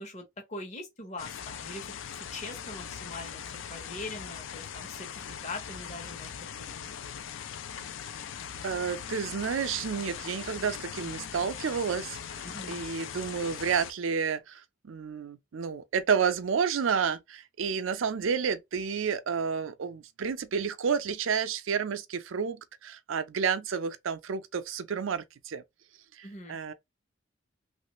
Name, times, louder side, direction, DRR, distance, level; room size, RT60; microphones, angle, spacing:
voice 1, 0.0-6.3 6.6-7.0 12.4-12.8 26.2-26.6, left 2 dB, 35° left, 1.0 m, -42 dB
sound 1, 1.2-13.9, left 8 dB, 75° left, 0.4 m, -40 dB
voice 2, 8.6-25.6 26.1-26.7, right 6 dB, 90° right, 0.5 m, -30 dB
3.1 x 2.5 x 3.0 m
head